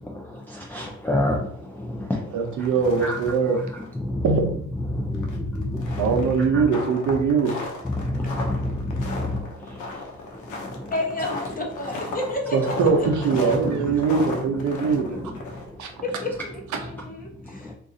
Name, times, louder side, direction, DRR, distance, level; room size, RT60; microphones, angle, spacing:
voice 1, 0.0-2.3 3.0-3.2 4.0-4.3 4.9-6.2 6.5-6.6 7.8-10.0 10.4-10.9 14.0-14.1 17.6-17.7, left 1 dB, 5° left, -2 dB, 0.4 m, -28 dB
voice 2, 2.3-3.6 4.2-4.4 6.0-7.5 12.5-15.3 15.8-15.9 16.7-16.9, right 5 dB, 70° right, 3 dB, 0.7 m, -22 dB
sound 1, 2.5-3.5 3.8-3.9 4.3-4.4 5.1-15.9, left 3 dB, 85° left, 0.8 m, -35 dB
voice 3, 10.9-12.8 13.2-13.6 16.0-17.7, left 1 dB, 30° left, 0 dB, 1.0 m, -31 dB
2.6 x 2.4 x 3.8 m, 0.64 s
cardioid pair, 90°, 30 cm